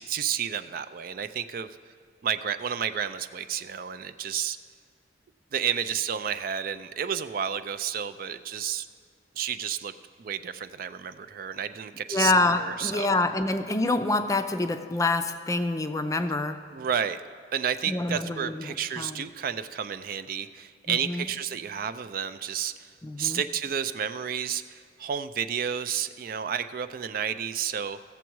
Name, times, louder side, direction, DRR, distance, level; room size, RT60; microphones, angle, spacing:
voice 1, 0.0-1.7 2.2-4.6 5.5-8.9 9.4-9.9 10.2-13.1 16.7-17.2 17.5-22.9 23.2-28.1, right 8 dB, 55° right, 12 dB, 0.4 m, -31 dB
voice 2, 12.1-16.6 17.8-19.2 20.9-21.3 23.0-23.4, left 2 dB, 20° left, 8 dB, 0.4 m, -27 dB
16.5 x 7.1 x 4.6 m, 2.1 s
head